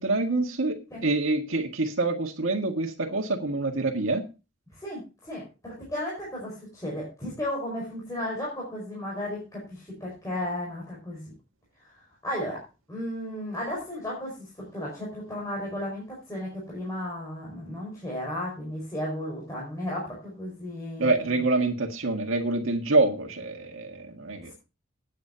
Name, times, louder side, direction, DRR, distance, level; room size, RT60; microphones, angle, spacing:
voice 1, 0.0-4.3 21.0-24.5, right 2 dB, 90° right, 4 dB, 1.8 m, -26 dB
voice 2, 4.8-11.3 11.8-12.6 12.9-21.4, left 1 dB, 15° left, -4 dB, 4.9 m, -34 dB
15.5 x 9.6 x 2.8 m, 0.30 s
head